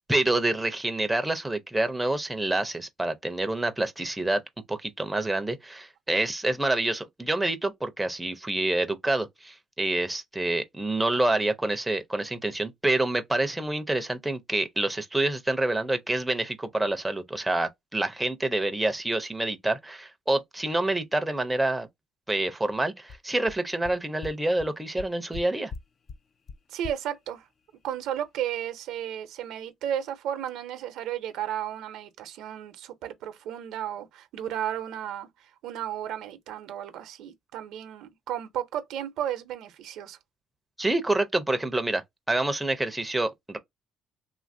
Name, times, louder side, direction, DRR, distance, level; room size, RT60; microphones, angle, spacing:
voice 1, 0.1-4.4 4.7-21.9 22.3-25.7 40.8-42.0 42.3-43.6, right 2 dB, 10° right, 0.5 m, -27 dB
sound 1, 23.1-23.2 23.5-23.6 23.8-23.9 24.2-24.3 24.6-24.7 25.0-25.4 25.7-25.8 26.1-26.2 26.5-26.6 26.8-26.9, left 5 dB, 45° left, 0.4 m, -38 dB
voice 2, 26.7-27.5 27.8-40.2, right 10 dB, 80° right, 0.6 m, -34 dB
2.8 x 2.4 x 2.6 m
cardioid pair, 100°, 0 cm